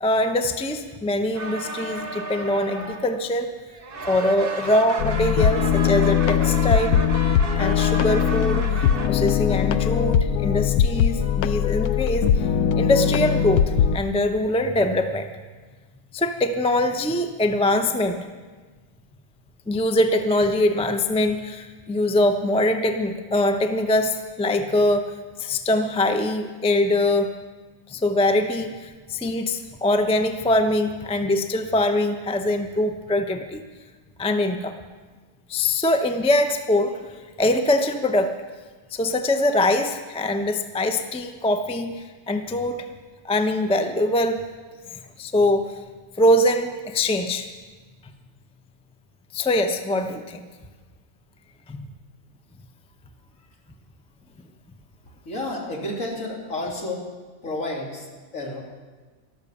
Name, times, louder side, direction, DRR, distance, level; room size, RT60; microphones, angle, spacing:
voice 1, 0.0-3.5 4.1-7.0 7.6-12.5 12.7-15.3 16.1-18.2 19.7-25.1 25.4-27.3 27.9-33.6 34.2-34.8 35.5-38.3 38.9-42.9 43.2-44.4 45.2-45.8 46.2-47.5 49.3-50.4 51.7-51.9, left 1 dB, 10° left, 7 dB, 0.4 m, -23 dB
sound 1, 1.3-3.5 3.7-9.1, right 4 dB, 40° right, 1.3 m, -33 dB
sound 2, 5.0-14.0, left 8 dB, 90° left, 1.1 m, -21 dB
voice 2, 55.2-57.1 57.4-58.6, left 2 dB, 60° left, -1 dB, 3.0 m, -31 dB
12.5 x 12.5 x 6.9 m, 1.4 s
omnidirectional pair, 1.5 m